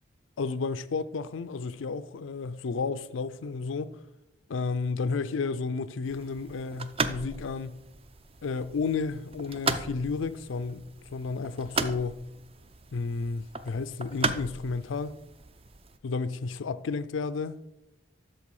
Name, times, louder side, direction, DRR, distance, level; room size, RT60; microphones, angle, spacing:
voice 1, 0.4-3.9 4.5-7.8 8.4-10.8 11.1-12.2 12.9-15.2 16.0-17.6, left 4 dB, 85° left, 0.4 m, -32 dB
sound 1, 6.0-16.0, right 4 dB, 30° right, 0.5 m, -36 dB
12.5 x 4.4 x 4.8 m
head